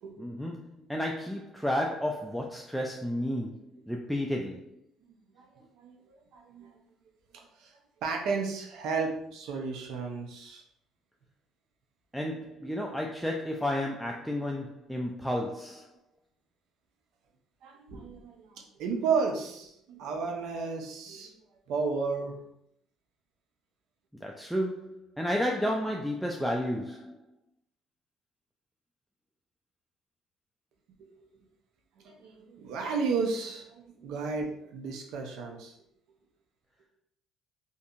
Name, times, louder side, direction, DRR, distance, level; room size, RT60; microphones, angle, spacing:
voice 1, 0.2-4.8 12.1-15.9 24.2-27.2, equal, ahead, 0 dB, 0.3 m, -32 dB
voice 2, 5.4-6.7 7.6-7.7 8.0-10.6 17.6-21.3 21.7-22.4 32.0-35.8, right 5 dB, 75° right, 2 dB, 0.6 m, -33 dB
2.7 x 2.6 x 2.4 m, 0.72 s
supercardioid pair, 90°, 0 cm